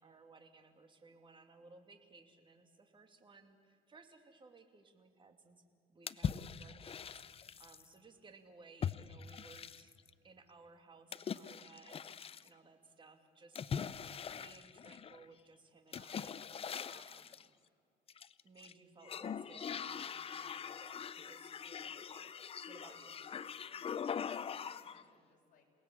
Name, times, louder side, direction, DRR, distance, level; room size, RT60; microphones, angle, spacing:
voice 1, 0.0-5.6 5.9-9.9 10.2-13.7 14.4-16.4 16.8-17.5 18.4-22.3 22.7-23.2, right 4 dB, 30° right, 6 dB, 2.7 m, -60 dB
sound 1, 6.1-7.9 8.8-10.1 11.1-12.5 13.6-15.3 15.9-17.5 18.1-18.7 19.0-25.0, left 7 dB, 35° left, 0.7 m, -42 dB
voice 2, 23.0-25.7, left 5 dB, 50° left, 1 dB, 6.0 m, -68 dB
28.5 x 18.5 x 8.7 m, 2.4 s
cardioid pair, 110°, 17 cm